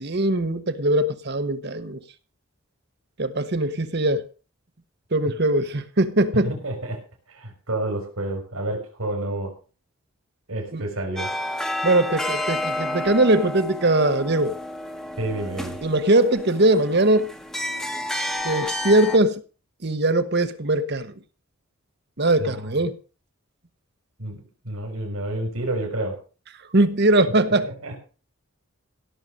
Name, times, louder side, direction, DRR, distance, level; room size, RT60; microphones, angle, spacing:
voice 1, 0.0-2.0 3.2-4.2 5.1-6.5 10.7-10.8 11.8-14.6 15.8-17.3 18.4-19.4 19.8-21.1 22.2-23.0 26.7-27.7, right 1 dB, 50° right, 1.1 m, -21 dB
voice 2, 6.4-7.0 7.3-9.5 10.5-11.3 15.2-15.8 22.4-22.7 24.2-24.4 24.6-26.2 27.6-28.0, right 1 dB, 85° right, 4.5 m, -29 dB
sound 1, 11.2-19.2, left 1 dB, ahead, 1.3 m, -30 dB
17.0 x 6.9 x 6.4 m
head